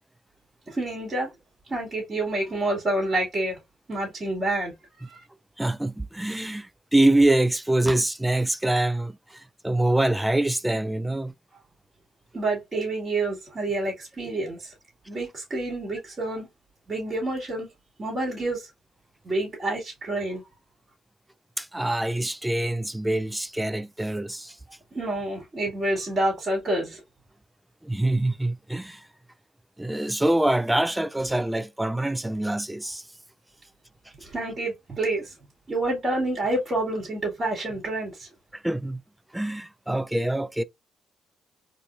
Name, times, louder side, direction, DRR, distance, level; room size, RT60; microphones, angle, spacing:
voice 1, 0.7-1.3 1.7-3.6 3.9-4.7 5.0-5.2 12.3-14.7 15.1-16.5 16.9-17.7 18.0-18.7 19.2-20.4 24.9-27.0 34.2-35.3 35.7-38.3, right 2 dB, 35° right, 2.5 m, -28 dB
voice 2, 5.6-11.3 21.6-24.6 27.8-29.0 29.8-33.0 38.5-39.0 39.3-40.6, right 1 dB, 5° right, 0.3 m, -25 dB
3.9 x 3.0 x 2.6 m
cardioid pair, 90°, 0 cm